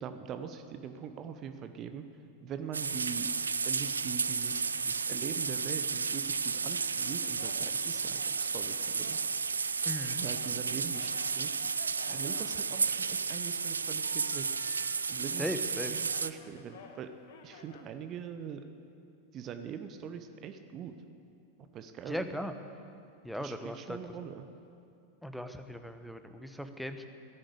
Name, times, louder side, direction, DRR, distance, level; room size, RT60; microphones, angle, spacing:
voice 1, 0.0-2.0 2.4-3.3 3.6-9.2 10.2-11.5 12.1-14.6 15.1-17.1 17.4-18.6 19.3-21.0 21.7-22.2 23.3-24.5, right 7 dB, 30° right, 8 dB, 0.9 m, -42 dB
sound 1, 2.7-16.3, right 5 dB, 75° right, 0.4 m, -32 dB
sound 2, 7.0-10.6 10.8-13.3 14.0-15.4 15.7-17.9, left 6 dB, 55° left, 1.4 m, -53 dB
voice 2, 9.9-10.2 15.4-16.0 22.1-22.5 23.2-24.0 25.2-27.1, equal, ahead, 8 dB, 1.0 m, -38 dB
16.5 x 10.5 x 7.8 m, 2.5 s
figure-of-eight pair, 90°, 0 cm